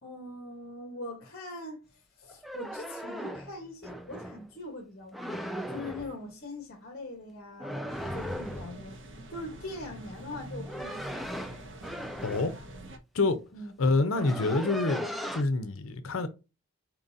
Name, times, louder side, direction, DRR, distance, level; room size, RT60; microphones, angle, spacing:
voice 1, 0.0-9.0 9.3-11.5 13.5-13.7, left 2 dB, 45° left, 1.2 m, -42 dB
sound 1, 2.3-4.5 5.1-6.2 7.6-8.8 10.3-12.6 13.5-13.6 13.8-15.4, equal, ahead, 0.4 m, -38 dB
sound 2, 7.9-13.0, right 1 dB, 60° right, 0.9 m, -45 dB
voice 2, 12.2-12.5 13.1-13.4 13.8-16.3, left 3 dB, 75° left, 0.6 m, -27 dB
4.6 x 3.8 x 2.6 m
head